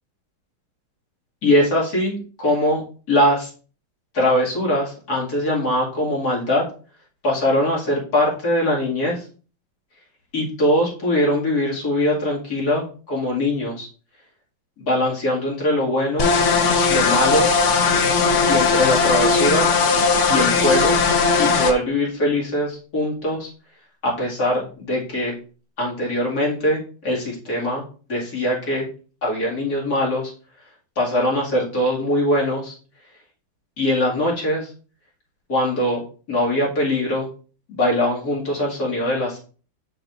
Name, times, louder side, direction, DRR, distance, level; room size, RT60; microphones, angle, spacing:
voice 1, 1.4-2.8 3.1-3.5 4.1-6.6 7.2-9.2 10.3-13.9 14.8-16.3 16.9-17.5 18.5-19.7 20.3-21.0 21.4-23.5 24.0-25.4 25.8-27.8 28.1-28.9 29.2-30.3 31.0-32.7 33.8-34.7 35.5-37.3 37.7-39.4, left 1 dB, 50° left, -4 dB, 2.8 m, -22 dB
sound 1, 16.2-21.7, left 4 dB, 75° left, 0.6 m, -18 dB
6.4 x 6.3 x 2.6 m, 0.38 s
omnidirectional pair, 2.2 m